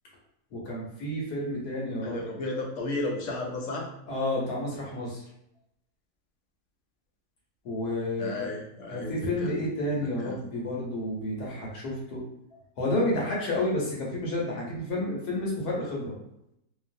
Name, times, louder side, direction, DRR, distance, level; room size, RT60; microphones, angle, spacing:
voice 1, 0.5-2.2 4.1-5.2 7.6-8.5 8.9-12.2 12.8-16.1, left 1 dB, 80° left, -4 dB, 1.5 m, -30 dB
voice 2, 2.0-3.9 8.2-9.5 10.2-10.4, left 2 dB, 65° left, 0 dB, 0.8 m, -33 dB
3.0 x 2.3 x 2.6 m, 0.80 s
omnidirectional pair, 1.6 m